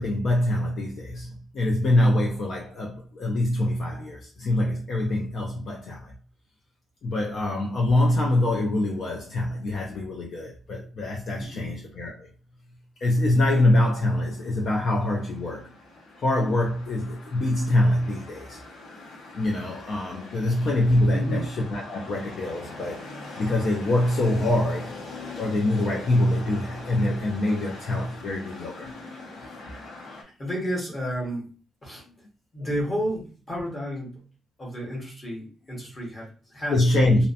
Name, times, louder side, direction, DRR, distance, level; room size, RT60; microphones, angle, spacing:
voice 1, 0.0-6.1 7.0-12.3 13.0-15.7 16.2-18.6 19.3-23.0 23.4-24.9 25.4-28.9 32.6-32.7 36.7-37.3, left 1 dB, 45° left, 0.4 m, -24 dB
voice 2, 11.4-11.7 21.1-21.5 30.1-31.5 31.8-32.1 32.5-34.2 34.6-37.2, equal, 20° left, 0.9 m, -32 dB
sound 1, 13.1-30.2, left 2 dB, 85° left, 0.7 m, -43 dB
2.7 x 2.1 x 2.5 m
cardioid pair, 175°, 0 cm